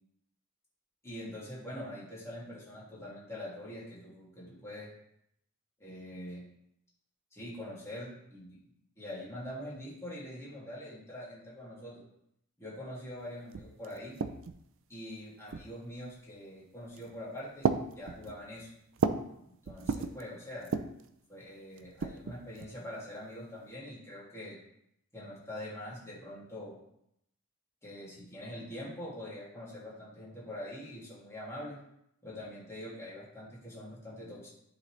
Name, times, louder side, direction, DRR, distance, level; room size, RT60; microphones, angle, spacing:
voice 1, 1.0-4.9 5.8-6.4 7.3-8.7 9.0-12.0 12.6-14.2 14.9-17.7 17.9-18.7 19.5-20.7 21.3-24.6 25.1-26.8 27.8-31.8 32.2-34.5, left 1 dB, 15° left, -7 dB, 2.5 m, -44 dB
sound 1, 13.2-13.3 13.5-14.7 15.5-16.0 16.8-17.2 17.6-19.3 19.7-20.2 20.6-21.1 21.8-22.8, right 4 dB, 60° right, 0.5 m, -34 dB
11.0 x 4.0 x 3.3 m, 0.77 s
head